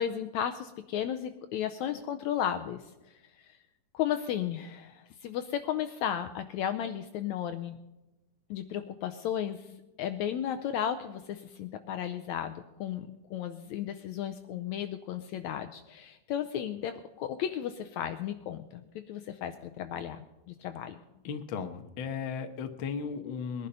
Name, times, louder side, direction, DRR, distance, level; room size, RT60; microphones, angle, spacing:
voice 1, 0.0-2.8 3.4-3.5 3.9-7.8 8.5-9.7 10.0-21.0, left 9 dB, 75° left, 8 dB, 1.8 m, -34 dB
voice 2, 21.2-23.7, left 6 dB, 60° left, 7 dB, 1.3 m, -36 dB
21.0 x 11.0 x 5.4 m, 0.98 s
omnidirectional pair, 3.7 m